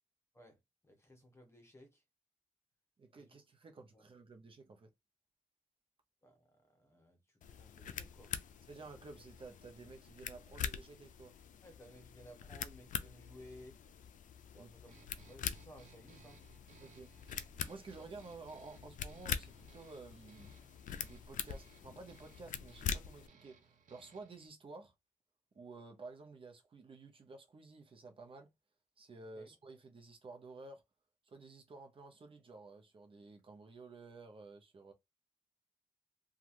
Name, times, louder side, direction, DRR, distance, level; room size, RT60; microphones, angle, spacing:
voice 1, 0.8-2.0 3.2-3.4 3.9-4.0 6.2-8.3 11.6-13.8 14.5-16.4 29.4-29.5, equal, 20° left, 1.0 m, -58 dB
voice 2, 3.0-4.9 8.7-11.3 14.6-14.7 16.8-17.1 17.7-20.5 21.0-24.9 25.5-28.5 29.0-30.8 31.3-34.9, right 3 dB, 40° right, 0.8 m, -53 dB
sound 1, 7.4-23.3, left 8 dB, 75° left, 0.4 m, -44 dB
sound 2, 14.9-24.5, right 6 dB, 80° right, 0.7 m, -64 dB
3.0 x 2.4 x 2.6 m
wide cardioid pair, 110°, 13 cm